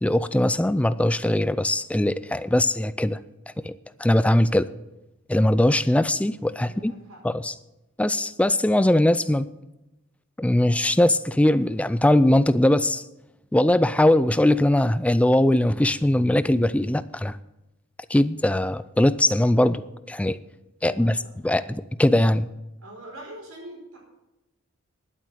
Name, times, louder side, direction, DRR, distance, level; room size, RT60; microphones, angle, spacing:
voice 1, 0.0-3.2 3.6-3.7 4.0-4.7 5.3-6.9 7.2-7.5 8.0-9.5 10.4-13.0 13.5-17.4 18.1-20.4 20.8-21.2 21.4-22.5, left 1 dB, 5° left, 15 dB, 0.3 m, -21 dB
voice 2, 6.6-7.2 20.8-21.1 22.8-24.0, right 1 dB, 75° right, -1 dB, 4.9 m, -42 dB
11.0 x 8.9 x 6.4 m, 0.98 s
head